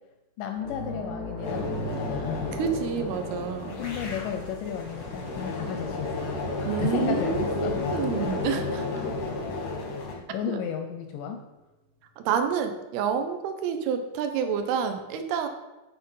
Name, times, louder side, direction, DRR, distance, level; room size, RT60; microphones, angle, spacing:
voice 1, 0.4-2.6 3.7-7.8 10.1-11.4, left 8 dB, 80° left, 4 dB, 1.9 m, -33 dB
sound 1, 0.5-9.5 9.8-10.0 12.1-12.2, equal, 25° left, 0.5 m, -40 dB
sound 2, 1.4-10.1, left 3 dB, 65° left, 1.1 m, -32 dB
voice 2, 2.6-3.8 6.7-8.8 12.2-15.5, right 7 dB, 85° right, 7 dB, 2.7 m, -28 dB
sound 3, 3.8-9.3, right 5 dB, 70° right, 3.2 m, -46 dB
9.2 x 4.4 x 5.5 m, 1.1 s
omnidirectional pair, 4.4 m